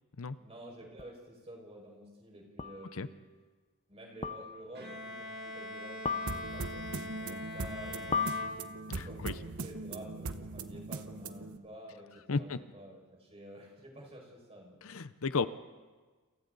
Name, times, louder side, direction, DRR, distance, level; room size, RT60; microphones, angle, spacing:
voice 1, 0.4-3.2 3.9-8.2 8.9-14.8, right 1 dB, 25° right, 0 dB, 5.6 m, -50 dB
sound 1, 1.0-1.1 2.6-3.0 4.2-4.8 6.1-6.8 8.1-9.1, left 5 dB, 25° left, 0.7 m, -36 dB
Bowed string instrument, 4.8-9.2, left 1 dB, 45° right, 2.9 m, -43 dB
sound 2, 6.3-11.6, right 3 dB, 75° right, 1.1 m, -40 dB
voice 2, 8.9-9.3 12.3-12.6 14.8-15.5, left 4 dB, 65° left, 13 dB, 0.7 m, -33 dB
29.0 x 27.5 x 4.0 m, 1.4 s
head